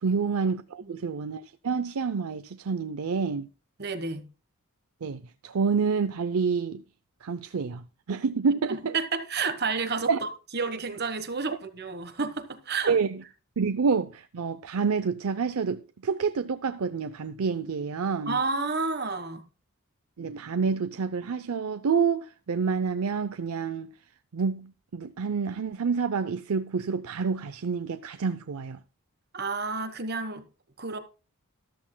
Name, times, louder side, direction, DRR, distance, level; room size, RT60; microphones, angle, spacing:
voice 1, 0.0-3.5 5.0-6.8 7.2-9.0 10.1-10.2 12.9-13.2 13.6-18.4 20.2-23.9 24.3-28.8, right 5 dB, 75° right, 0.5 m, -28 dB
voice 2, 3.8-4.3 8.7-13.0 18.3-19.4 29.3-30.5 30.8-31.0, right 4 dB, 45° right, 1.3 m, -31 dB
13.5 x 13.0 x 2.2 m
head